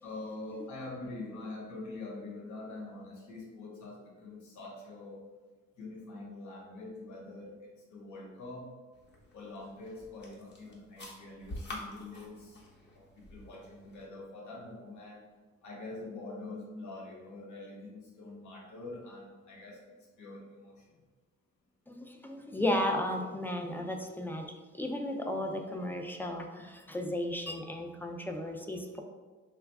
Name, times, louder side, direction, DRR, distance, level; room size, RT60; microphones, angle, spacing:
voice 1, 0.0-5.3 5.8-7.5 7.9-8.7 9.3-12.6 12.9-15.2 15.6-19.8 20.2-20.8, left 2 dB, 75° left, -2 dB, 1.1 m, -44 dB
sound 1, 8.9-14.1, left 1 dB, 35° left, 0.9 m, -48 dB
voice 2, 21.9-24.5 24.7-29.0, left 1 dB, 5° left, 2 dB, 0.3 m, -34 dB
3.1 x 2.3 x 3.4 m, 1.3 s
cardioid pair, 90°, 30 cm